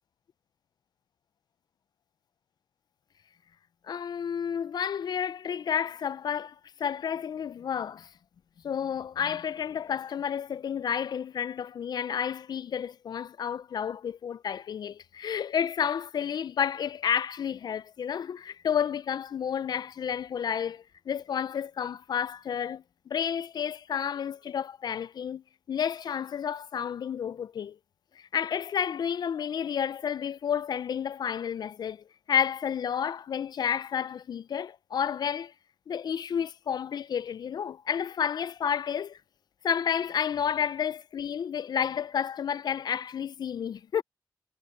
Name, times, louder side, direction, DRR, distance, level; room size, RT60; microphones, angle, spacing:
voice 1, 3.9-8.1 8.6-25.4 25.7-27.8 28.2-35.5 35.9-39.2 39.6-44.0, left 8 dB, 70° left, 0.4 m, -31 dB
wide cardioid pair, 175°, 7 cm